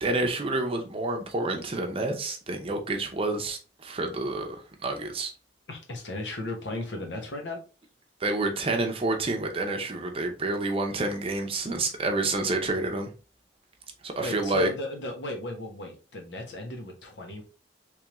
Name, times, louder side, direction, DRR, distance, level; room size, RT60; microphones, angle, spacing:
voice 1, 0.0-5.3 8.2-13.1 14.0-14.7, right 2 dB, 30° right, 0.7 m, -28 dB
voice 2, 5.7-7.6 14.2-17.4, left 2 dB, 75° left, 1.1 m, -36 dB
3.5 x 3.2 x 3.0 m
head